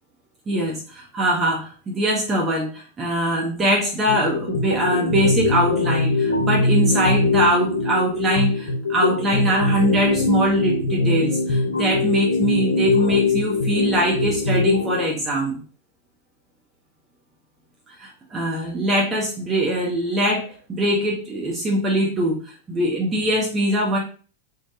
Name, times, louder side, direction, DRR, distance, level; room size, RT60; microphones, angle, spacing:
voice 1, 0.5-15.6 18.0-24.0, right 1 dB, 20° right, -2 dB, 0.7 m, -22 dB
sound 1, 4.1-15.1, left 3 dB, 70° left, 0.4 m, -22 dB
3.1 x 2.1 x 2.7 m, 0.38 s
figure-of-eight pair, 90°, 0 cm